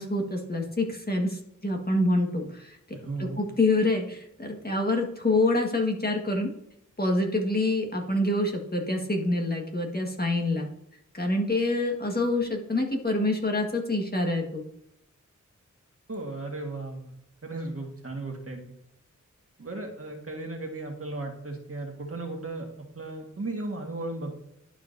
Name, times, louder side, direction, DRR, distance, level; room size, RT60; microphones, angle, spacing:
voice 1, 0.0-2.8 3.2-6.5 7.0-10.7 11.2-14.6, left 2 dB, 30° left, 1 dB, 1.6 m, -26 dB
voice 2, 2.9-3.4 16.1-17.1 17.4-18.6 19.6-22.7 23.0-24.4, right 2 dB, 45° right, 2 dB, 1.7 m, -35 dB
11.5 x 4.9 x 2.7 m, 0.77 s
wide cardioid pair, 60°, 31 cm